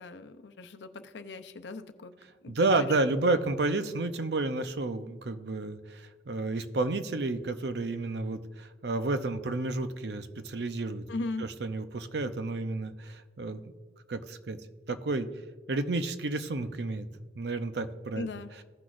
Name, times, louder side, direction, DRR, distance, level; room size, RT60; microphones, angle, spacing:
voice 1, 0.0-2.1 2.4-3.4 11.1-11.5 18.1-18.5, left 2 dB, 85° left, 10 dB, 0.6 m, -39 dB
voice 2, 2.5-11.0 11.6-13.6 14.1-14.6 14.9-15.3 15.7-17.1 17.4-18.3, right 2 dB, 75° right, 9 dB, 0.6 m, -31 dB
15.5 x 6.1 x 2.5 m, 1.5 s
head